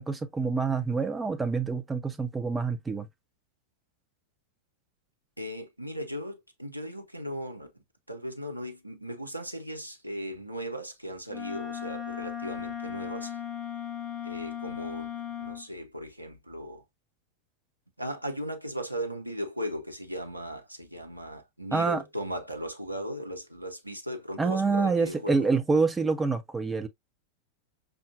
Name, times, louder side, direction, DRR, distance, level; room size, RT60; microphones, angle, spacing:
voice 1, 0.0-3.1 21.7-22.0 24.4-26.9, right 4 dB, 10° right, 0.6 m, -27 dB
voice 2, 5.4-7.7 8.1-13.4 14.2-16.8 18.0-25.5, equal, 85° right, 0.8 m, -37 dB
Wind instrument woodwind instrument, 11.3-15.7, left 9 dB, 25° left, 0.6 m, -37 dB
5.5 x 2.6 x 2.2 m
figure-of-eight pair, 90°, 0 cm